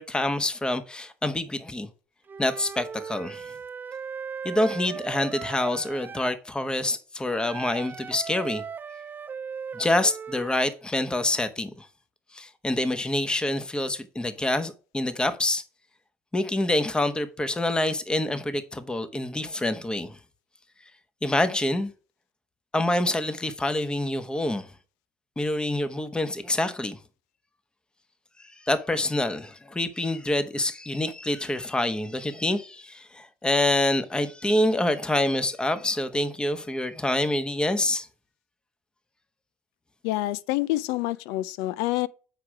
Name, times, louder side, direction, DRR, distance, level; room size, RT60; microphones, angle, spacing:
voice 1, 0.0-1.9 2.4-3.5 4.4-8.6 9.7-11.9 12.3-15.6 16.3-20.2 21.2-21.9 22.7-24.7 25.4-27.0 28.4-38.1, left 1 dB, 15° left, 1.1 m, -26 dB
Wind instrument woodwind instrument, 2.3-6.4 7.3-10.7, right 6 dB, 35° right, 0.4 m, -38 dB
voice 2, 40.0-42.1, left 17 dB, 85° left, 0.5 m, -27 dB
8.2 x 4.9 x 4.7 m
supercardioid pair, 70°, 6 cm